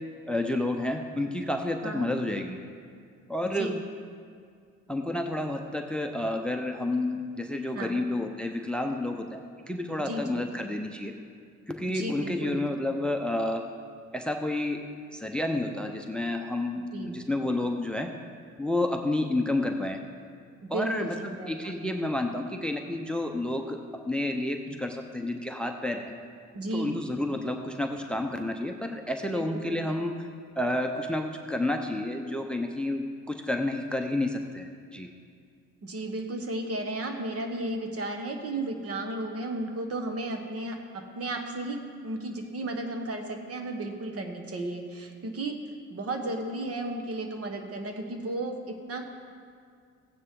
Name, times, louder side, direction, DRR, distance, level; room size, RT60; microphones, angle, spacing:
voice 1, 0.3-2.6 3.3-3.8 4.9-11.1 11.7-13.7 14.1-18.1 18.6-20.0 20.7-26.2 26.7-30.1 30.6-35.1, left 1 dB, 5° left, 5 dB, 0.7 m, -30 dB
voice 2, 10.0-10.4 11.9-12.6 16.9-17.2 20.6-21.7 26.5-27.0 29.3-30.0 35.8-45.6 45.9-49.1, right 2 dB, 50° right, 4 dB, 1.4 m, -34 dB
15.5 x 9.3 x 3.7 m, 2.2 s
cardioid pair, 90°, 30 cm